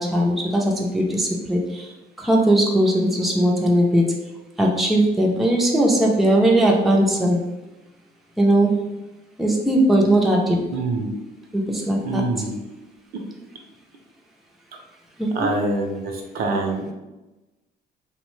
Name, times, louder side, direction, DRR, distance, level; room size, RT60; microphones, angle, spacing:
voice 1, 0.0-1.9 2.2-4.1 4.6-7.4 8.4-8.7 9.4-10.6 11.5-12.2 15.2-15.5, right 1 dB, ahead, -1 dB, 0.4 m, -19 dB
voice 2, 10.7-11.1 12.0-12.6 15.3-16.9, right 3 dB, 65° right, 3 dB, 0.5 m, -25 dB
2.8 x 2.1 x 3.0 m, 1.1 s
cardioid pair, 110°, 17 cm